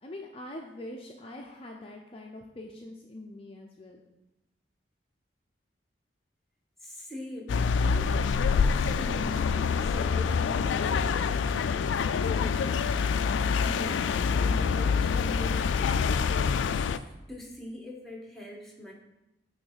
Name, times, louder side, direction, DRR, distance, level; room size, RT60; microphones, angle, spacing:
voice 1, 0.0-4.0, left 1 dB, 30° left, 0 dB, 0.6 m, -43 dB
voice 2, 6.8-8.2 9.0-11.8 12.3-12.8 13.6-16.3 16.7-17.0 17.3-18.9, left 1 dB, ahead, -2 dB, 1.2 m, -42 dB
sound 1, 7.5-17.0, left 5 dB, 90° left, 0.3 m, -26 dB
8.8 x 3.2 x 5.6 m, 0.97 s
head